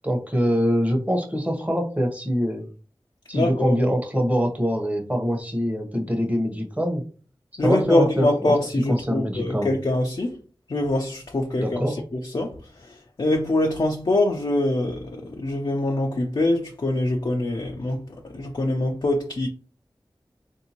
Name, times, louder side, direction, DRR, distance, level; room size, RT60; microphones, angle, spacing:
voice 1, 0.0-2.7 3.3-7.0 7.6-8.5 8.9-9.7 11.6-11.9, equal, 15° right, 0.9 m, -24 dB
voice 2, 3.3-3.8 7.6-10.4 10.7-19.5, left 2 dB, 55° left, 0.5 m, -24 dB
3.6 x 2.6 x 2.9 m
wide cardioid pair, 55°, 9 cm